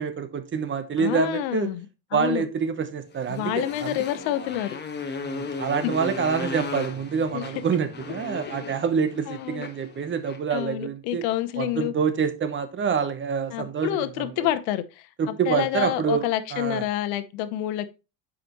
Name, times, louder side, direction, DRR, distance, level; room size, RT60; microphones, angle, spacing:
voice 1, 0.0-1.7 2.1-4.0 5.2-11.2 11.6-14.5 15.2-16.2 16.5-16.8, right 6 dB, 30° right, 1.0 m, -27 dB
voice 2, 1.0-1.9 2.1-2.4 3.3-4.8 5.8-5.9 7.3-7.4 9.3-9.7 10.5-11.9 13.5-17.9, left 13 dB, 85° left, 0.9 m, -28 dB
Motorcycle, 3.1-10.5, left 4 dB, 25° left, 1.3 m, -36 dB
8.8 x 5.0 x 3.0 m
cardioid pair, 120°, 39 cm